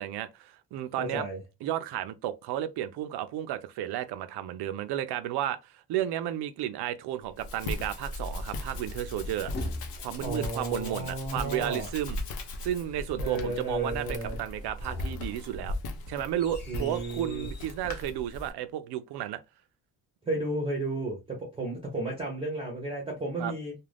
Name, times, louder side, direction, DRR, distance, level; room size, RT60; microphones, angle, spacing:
voice 1, 0.0-1.2 1.6-9.5 10.0-12.2 12.6-15.8 16.1-19.4 23.4-23.5, right 12 dB, 70° right, 0.5 m, -33 dB
voice 2, 1.0-1.4 10.2-11.9 13.2-14.4 16.7-17.5 20.3-23.7, right 2 dB, 15° right, 0.6 m, -33 dB
Rattle (instrument), 7.1-13.1, left 5 dB, 80° left, 0.9 m, -46 dB
Walk footsteps, 7.4-18.5, left 1 dB, 60° left, 0.7 m, -38 dB
sound 1, 8.9-10.4 14.5-17.7, left 2 dB, 25° left, 0.6 m, -42 dB
2.4 x 2.2 x 3.2 m
cardioid pair, 160°, 41 cm